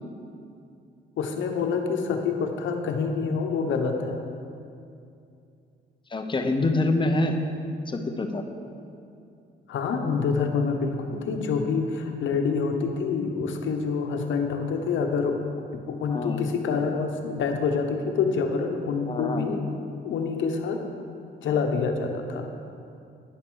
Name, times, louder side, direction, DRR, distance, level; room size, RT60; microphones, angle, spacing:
voice 1, 1.2-4.2 9.7-15.4 15.9-19.6 20.0-20.8 21.4-22.5, left 5 dB, 75° left, 4 dB, 1.0 m, -27 dB
voice 2, 6.1-7.3 7.9-8.4 16.1-16.4 19.1-19.5, left 2 dB, 25° left, 5 dB, 0.9 m, -26 dB
9.6 x 6.0 x 6.4 m, 2.5 s
cardioid pair, 90°, 20 cm